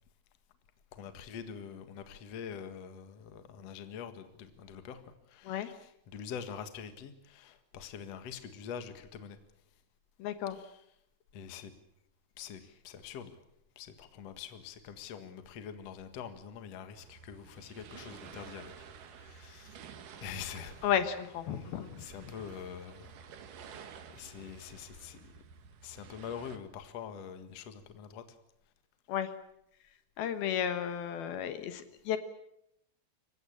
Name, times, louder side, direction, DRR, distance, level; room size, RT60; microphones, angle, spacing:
voice 1, 0.9-9.4 10.5-10.8 11.3-11.7 12.4-13.4 13.8-18.7 19.1-19.8 20.2-20.9 21.4-23.1 24.1-25.3 25.8-28.4, left 7 dB, 50° left, 9 dB, 2.3 m, -45 dB
voice 2, 10.2-10.6 20.8-22.3 29.1-29.3 30.2-32.2, left 9 dB, 75° left, 10 dB, 3.0 m, -33 dB
sound 1, 16.9-26.6, right 7 dB, 60° right, 3.0 m, -51 dB
27.0 x 16.0 x 8.8 m, 0.79 s
omnidirectional pair, 4.6 m